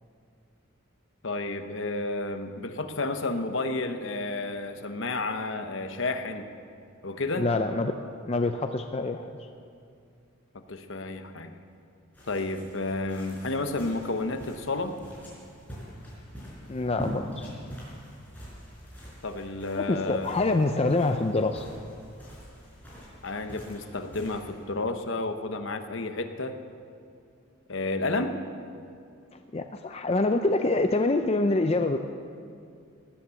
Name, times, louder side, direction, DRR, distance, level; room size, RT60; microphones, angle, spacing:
voice 1, 1.2-6.5 7.0-7.5 10.7-11.5 12.3-15.0 19.2-20.3 23.2-26.6 27.7-28.4, left 2 dB, 60° left, 7 dB, 1.0 m, -31 dB
voice 2, 7.4-8.0 8.2-9.3 16.7-17.5 19.7-21.7 29.3-32.0, left 2 dB, 30° left, 6 dB, 0.4 m, -26 dB
sound 1, 12.1-24.9, equal, 10° left, 5.1 m, -44 dB
18.0 x 9.7 x 7.0 m, 2.4 s
head